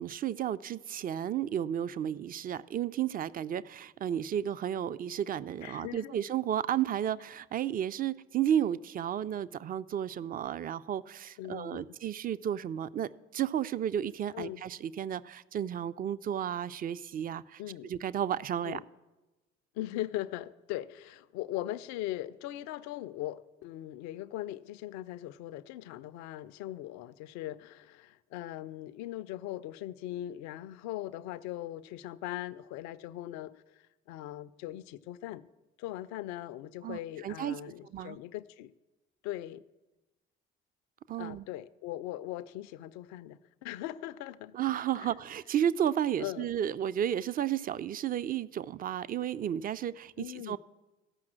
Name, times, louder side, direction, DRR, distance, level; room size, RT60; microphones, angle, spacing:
voice 1, 0.0-18.8 36.8-37.6 37.9-38.2 41.1-41.5 44.5-50.6, right 10 dB, 25° right, 0.4 m, -33 dB
voice 2, 5.6-6.1 11.4-11.8 14.3-14.6 17.6-17.9 18.6-18.8 19.7-35.5 35.8-38.7 39.2-39.6 41.2-44.5 45.0-45.1 46.2-46.5 50.2-50.6, left 14 dB, 55° left, 0.5 m, -40 dB
14.0 x 5.9 x 7.5 m
figure-of-eight pair, 50°, 33 cm